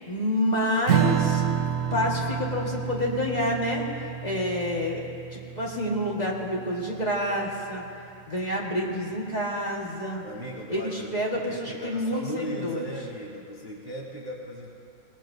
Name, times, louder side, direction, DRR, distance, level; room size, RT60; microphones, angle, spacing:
voice 1, 0.1-1.4 1.9-3.8 4.2-7.8 8.3-10.2 10.7-12.8, left 1 dB, 30° left, -3 dB, 1.8 m, -28 dB
Strum, 0.9-7.7, right 9 dB, 65° right, 1.0 m, -29 dB
voice 2, 10.2-14.7, equal, 15° right, -3 dB, 1.1 m, -37 dB
22.0 x 18.5 x 2.7 m, 2.6 s
omnidirectional pair, 1.5 m